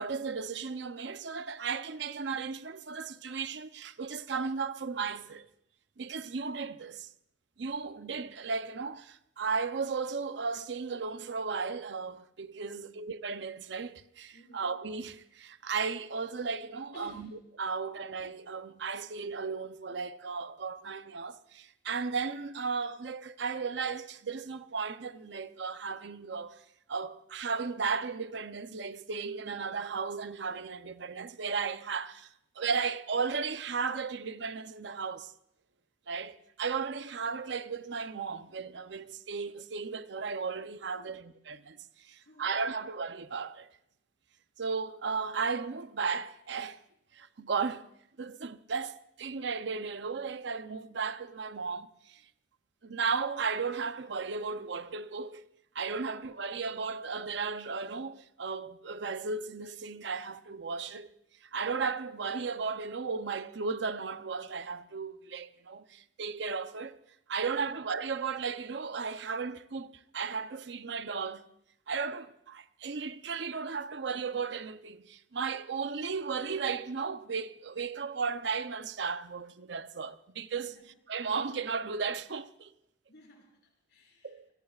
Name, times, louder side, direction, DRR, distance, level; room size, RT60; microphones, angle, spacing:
voice 1, 0.0-5.5 6.0-7.1 7.6-17.3 17.6-26.6 26.9-32.3 32.6-35.3 36.1-43.7 44.6-46.8 47.1-47.9 48.2-52.2 52.8-55.4 55.7-61.1 61.4-67.0 67.3-71.5 71.9-80.7 81.1-82.7 84.2-84.5, right 5 dB, 65° right, 0.6 m, -35 dB
voice 2, 12.7-13.0 14.3-14.7 16.9-17.4 40.9-41.2 42.2-42.8 56.0-56.2 67.5-67.7 80.6-80.9 83.1-84.5, left 1 dB, 60° left, 4.9 m, -56 dB
28.5 x 20.5 x 2.4 m
head